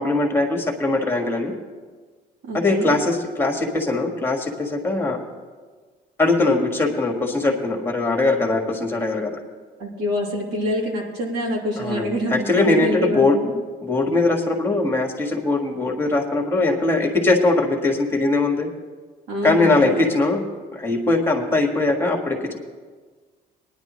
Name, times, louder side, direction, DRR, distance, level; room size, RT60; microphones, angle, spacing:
voice 1, 0.0-1.5 2.5-5.2 6.2-9.4 11.8-13.4 13.8-18.7 19.4-20.4 20.7-22.6, left 2 dB, 15° left, 1 dB, 1.7 m, -21 dB
voice 2, 2.4-2.9 9.8-13.5 19.3-20.1, equal, 80° right, -3 dB, 3.0 m, -26 dB
19.0 x 10.5 x 3.1 m, 1.4 s
cardioid pair, 110°, 17 cm